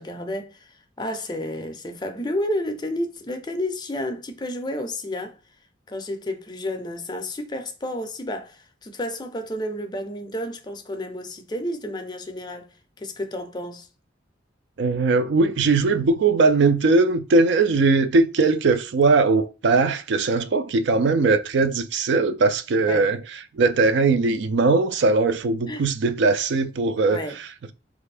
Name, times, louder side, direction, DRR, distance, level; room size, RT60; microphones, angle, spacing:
voice 1, 0.0-5.4 5.9-13.9 22.8-23.1 25.7-25.8 27.1-27.4, left 1 dB, 20° left, 0.5 m, -31 dB
voice 2, 14.8-23.2 23.5-27.7, right 3 dB, 65° right, 0.3 m, -20 dB
3.4 x 2.5 x 3.3 m
head